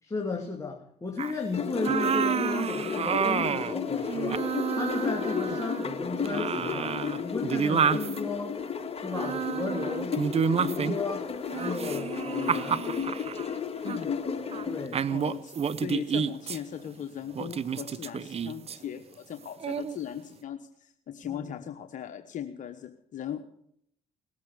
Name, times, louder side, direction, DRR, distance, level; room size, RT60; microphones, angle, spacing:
voice 1, 0.0-8.6 8.9-10.2 10.6-12.9 14.6-15.0 21.2-21.5, left 4 dB, 20° left, 1 dB, 2.7 m, -35 dB
sound 1, 1.2-1.4 1.8-3.8 4.1-6.0 6.3-8.2 9.1-11.1 11.5-13.5 13.9-14.0 14.5-14.7 14.9-16.6 17.4-18.8 19.6-20.0, right 7 dB, 45° right, 0.8 m, -29 dB
sound 2, 1.5-14.9, left 6 dB, 40° left, 1.9 m, -33 dB
voice 2, 13.8-14.2 15.1-23.5, left 9 dB, 60° left, 6 dB, 1.1 m, -39 dB
18.5 x 8.4 x 8.1 m, 0.71 s
supercardioid pair, 60°, 15 cm